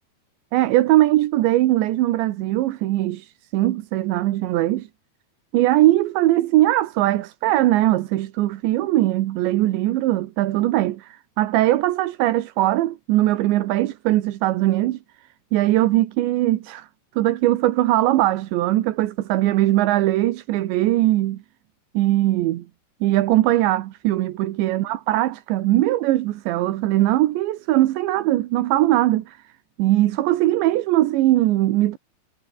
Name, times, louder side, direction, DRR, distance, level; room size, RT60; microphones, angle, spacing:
voice 1, 0.5-3.3 3.5-4.9 5.5-15.0 15.5-16.9 17.2-21.4 21.9-22.6 23.0-29.4 29.8-32.0, right 15 dB, 85° right, 3.4 m, -20 dB
omnidirectional pair, 5.2 m